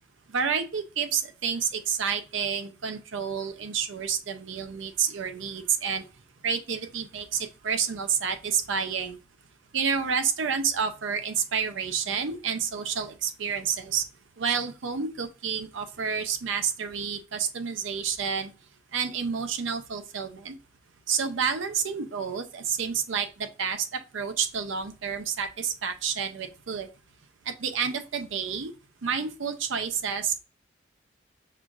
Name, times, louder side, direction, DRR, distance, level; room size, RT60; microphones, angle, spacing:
voice 1, 0.3-6.1 6.4-9.2 9.7-14.1 14.4-18.5 18.9-20.6 21.1-26.9 27.4-28.7 29.0-30.4, right 6 dB, 70° right, 8 dB, 0.5 m, -29 dB
5.5 x 2.4 x 2.4 m, 0.31 s
head